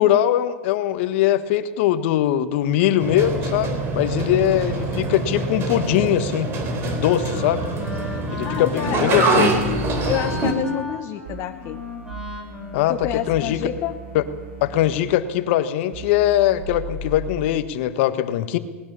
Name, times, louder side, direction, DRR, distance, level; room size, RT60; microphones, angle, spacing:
voice 1, 0.0-6.5 6.8-7.6 8.3-9.5 12.7-13.6 14.1-14.3 14.6-18.6, left 12 dB, 60° left, 11 dB, 1.5 m, -21 dB
sound 1, 3.0-10.5, right 2 dB, 35° right, 3.8 m, -24 dB
Wind instrument woodwind instrument, 7.3-14.0, left 2 dB, 5° right, 5.5 m, -36 dB
voice 2, 8.4-9.3 10.1-11.8 12.9-13.9, left 12 dB, 40° left, 6 dB, 1.2 m, -28 dB
sound 2, 9.6-10.1 11.2-15.0 15.9-17.4, right 1 dB, 70° right, 5.3 m, -37 dB
20.0 x 19.5 x 7.0 m, 1.2 s
hypercardioid pair, 120°, 7 cm